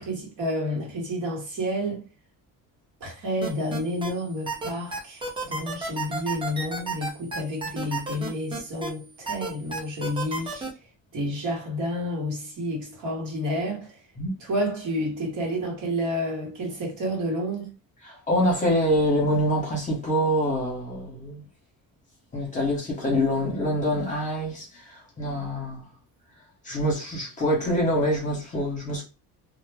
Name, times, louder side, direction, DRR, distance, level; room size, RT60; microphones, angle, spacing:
voice 1, 0.0-2.0 3.0-10.7 11.1-14.0 14.4-17.7, equal, 55° right, 1.1 m, -30 dB
sound 1, 3.4-4.1 4.5-8.9 9.3-10.7, right 3 dB, 15° right, 0.5 m, -31 dB
voice 2, 18.0-21.4 22.3-25.8 26.6-29.0, equal, 20° left, 0.9 m, -25 dB
2.1 x 2.0 x 3.2 m
cardioid pair, 180°, 35 cm